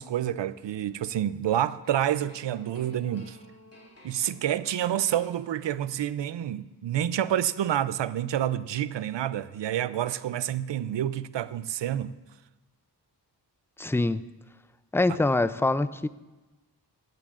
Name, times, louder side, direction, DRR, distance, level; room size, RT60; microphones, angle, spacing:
voice 1, 0.0-3.4 4.0-12.1, right 11 dB, 85° right, 0.5 m, -28 dB
sound 1, 1.8-5.9, left 1 dB, 35° left, 3.9 m, -54 dB
voice 2, 13.8-14.2 14.9-16.1, left 2 dB, 5° left, 0.3 m, -24 dB
16.5 x 14.5 x 2.5 m
cardioid pair, 60°, 42 cm